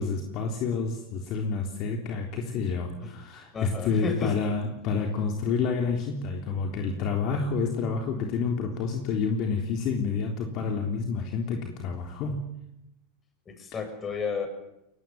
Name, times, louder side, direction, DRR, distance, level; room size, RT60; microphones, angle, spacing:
voice 1, 0.0-12.4, left 5 dB, 50° left, 3 dB, 3.7 m, -29 dB
voice 2, 3.5-4.3 13.5-14.5, left 5 dB, 25° left, 7 dB, 7.0 m, -32 dB
23.5 x 19.0 x 9.4 m, 0.83 s
hypercardioid pair, 110°, 0 cm